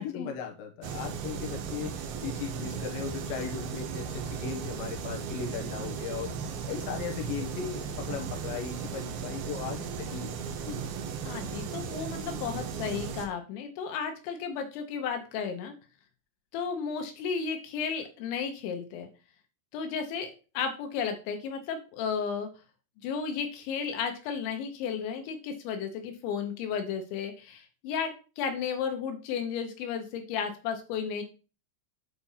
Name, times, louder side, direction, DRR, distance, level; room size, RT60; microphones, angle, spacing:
voice 1, 0.0-6.3 6.7-10.8, left 7 dB, 60° left, 1 dB, 2.8 m, -37 dB
sound 1, 0.8-13.3, right 6 dB, 70° right, 2.6 m, -36 dB
voice 2, 11.2-15.7 16.5-19.1 19.7-22.5 23.0-31.2, left 6 dB, 80° left, 5 dB, 3.5 m, -33 dB
8.5 x 4.3 x 5.6 m, 0.34 s
omnidirectional pair, 5.2 m